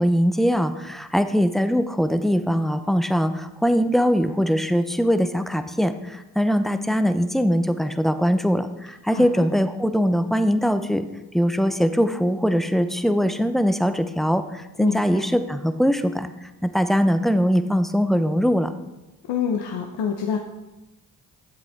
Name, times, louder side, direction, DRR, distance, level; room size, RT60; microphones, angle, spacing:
voice 1, 0.0-11.1 11.3-16.3 16.6-18.7, equal, ahead, 10 dB, 0.7 m, -21 dB
voice 2, 9.1-9.4 14.8-15.2 19.3-20.4, left 7 dB, 80° left, 2 dB, 0.9 m, -27 dB
11.0 x 7.5 x 3.5 m, 1.0 s
supercardioid pair, 50°, 41 cm